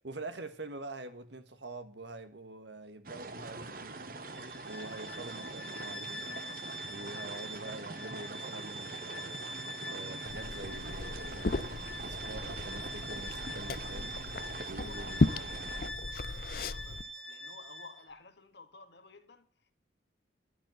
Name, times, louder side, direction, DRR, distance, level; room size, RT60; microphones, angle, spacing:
voice 1, 0.0-4.1 4.4-6.4 6.9-9.4 9.9-14.2 14.7-15.5 15.8-15.9, right 2 dB, 70° right, 1.7 m, -46 dB
sound 1, 3.1-15.9, right 3 dB, 50° right, 1.5 m, -44 dB
Bowed string instrument, 4.2-18.1, equal, 5° left, 1.9 m, -44 dB
Liquid, 10.3-17.0, left 3 dB, 50° left, 0.6 m, -35 dB
voice 2, 14.8-19.7, left 3 dB, 65° left, 1.9 m, -54 dB
13.0 x 10.0 x 7.9 m
head